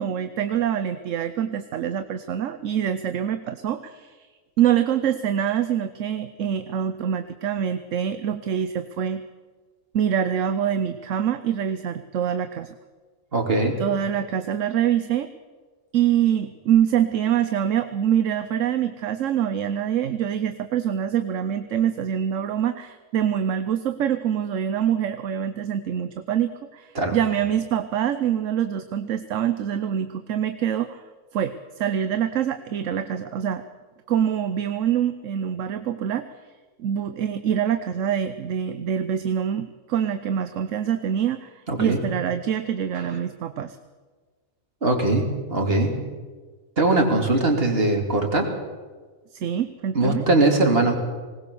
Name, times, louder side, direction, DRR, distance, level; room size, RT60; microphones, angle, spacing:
voice 1, 0.0-4.3 4.6-9.2 9.9-12.7 13.8-15.3 15.9-31.0 31.3-33.6 34.1-36.3 36.8-43.8 49.3-50.3, right 9 dB, 70° right, 11 dB, 1.1 m, -25 dB
voice 2, 13.3-13.8 26.9-27.2 41.7-42.0 44.8-45.9 46.8-48.5 49.9-51.0, right 2 dB, 45° right, 2 dB, 3.0 m, -21 dB
20.5 x 18.0 x 6.9 m, 1.4 s
omnidirectional pair, 1.4 m